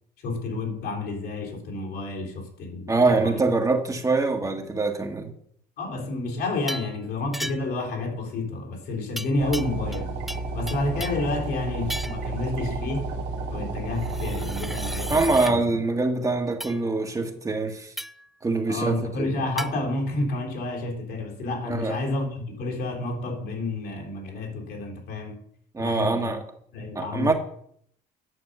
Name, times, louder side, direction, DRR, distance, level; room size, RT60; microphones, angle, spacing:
voice 1, 0.2-3.4 4.5-4.6 5.8-10.1 10.5-13.1 13.5-15.8 18.7-25.4 25.8-26.4 26.7-27.3, left 2 dB, 70° left, 3.6 m, -30 dB
voice 2, 2.9-5.3 15.1-17.9 18.4-19.4 21.7-22.0 25.7-26.4 26.9-27.3, right 3 dB, 20° right, 1.5 m, -24 dB
sound 1, 6.7-7.0 7.3-7.8 9.2-10.0 10.3-11.3 11.9-12.3 14.0-15.6 16.6-16.8 18.0-18.3 19.6-19.7, equal, ahead, 0.5 m, -35 dB
sound 2, 9.4-15.4, right 3 dB, 85° right, 1.7 m, -32 dB
9.8 x 7.0 x 6.7 m
cardioid pair, 110°, 17 cm